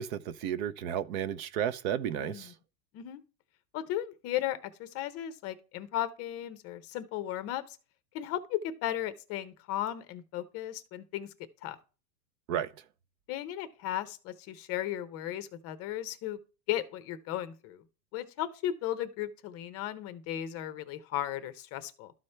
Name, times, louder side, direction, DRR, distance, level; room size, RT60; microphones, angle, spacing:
voice 1, 0.0-2.5 12.5-12.7, right 9 dB, 60° right, 0.8 m, -32 dB
voice 2, 3.7-7.8 8.1-11.3 11.6-11.8 13.3-16.4 16.7-17.8 18.1-22.1, left 12 dB, 30° left, 0.6 m, -35 dB
12.5 x 4.3 x 3.3 m
supercardioid pair, 135°, 49 cm